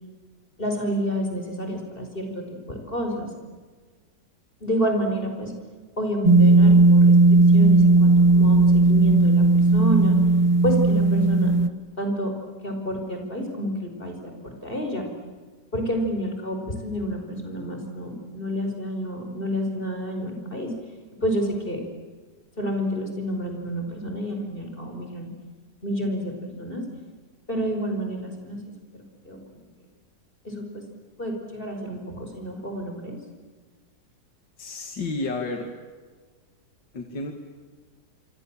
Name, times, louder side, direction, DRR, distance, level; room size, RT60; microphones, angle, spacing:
voice 1, 0.6-2.3 2.7-3.3 4.6-5.5 6.0-9.4 9.7-10.2 10.6-11.5 12.0-12.3 12.6-15.0 15.7-20.7 21.2-21.8 22.6-25.3 25.8-26.8 27.5-28.6 29.2-29.6 30.4-30.8 31.2-33.2, equal, 30° left, 3 dB, 5.4 m, -29 dB
sound 1, 6.2-11.7, right 3 dB, 35° right, 0.5 m, -16 dB
voice 2, 34.6-35.7 36.9-37.3, left 3 dB, 85° left, 4 dB, 2.9 m, -31 dB
27.5 x 25.5 x 7.6 m, 1.4 s
omnidirectional pair, 1.9 m